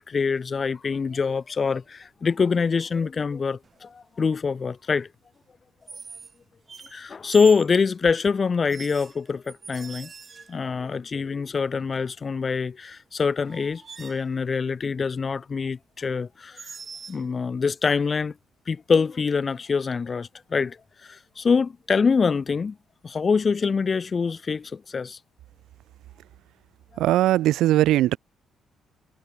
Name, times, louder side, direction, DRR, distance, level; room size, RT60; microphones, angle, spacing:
voice 1, 0.0-5.1 6.9-10.1 10.5-16.7 17.1-18.3 18.7-22.8 23.0-25.2 26.9-27.0, left 5 dB, 40° left, 1.0 m, -25 dB
sound 1, 1.5-1.9 3.6-4.0 5.9-6.4 6.7-7.7 8.7-10.7 12.9-13.0 13.4-14.3 16.6-17.2, right 5 dB, 40° right, 6.0 m, -43 dB
voice 2, 27.0-28.2, right 14 dB, 85° right, 0.4 m, -19 dB
cardioid pair, 90°, 0 cm